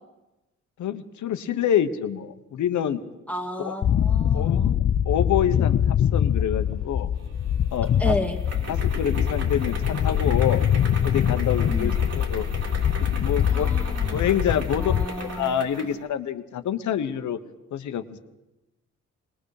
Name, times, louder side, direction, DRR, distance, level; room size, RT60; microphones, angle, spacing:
voice 1, 0.8-3.0 3.6-3.7 4.3-4.6 5.0-7.1 7.7-8.2 8.7-10.6 11.0-12.4 13.0-13.7 14.1-17.4 17.7-18.2, left 9 dB, 75° left, 9 dB, 1.2 m, -27 dB
voice 2, 3.3-4.7 8.0-8.4 11.7-11.9 13.5-14.2 14.7-15.6, left 1 dB, 5° left, 3 dB, 1.9 m, -32 dB
sound 1, 3.8-15.0, left 9 dB, 50° left, 0.6 m, -23 dB
sound 2, 7.2-16.0, right 3 dB, 55° right, 3.7 m, -38 dB
21.0 x 19.0 x 6.6 m, 1.0 s
cardioid pair, 70°, 30 cm